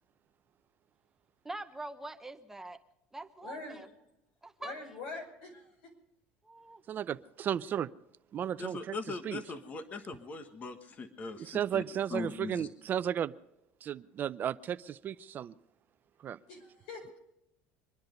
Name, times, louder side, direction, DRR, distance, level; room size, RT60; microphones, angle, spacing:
voice 1, 1.4-2.8 3.1-3.9 4.4-4.7 6.4-6.8, right 2 dB, 10° right, 0.9 m, -44 dB
voice 2, 3.4-3.8 4.6-5.9 16.5-17.2, left 3 dB, 80° left, 5.4 m, -44 dB
voice 3, 6.9-7.9 8.3-9.0 9.2-9.4 11.4-13.3 13.8-15.5 16.2-16.4, right 9 dB, 40° right, 0.5 m, -34 dB
voice 4, 8.6-11.8 12.1-12.7, left 3 dB, 30° left, 1.4 m, -40 dB
24.5 x 10.5 x 5.3 m
supercardioid pair, 120°, 5 cm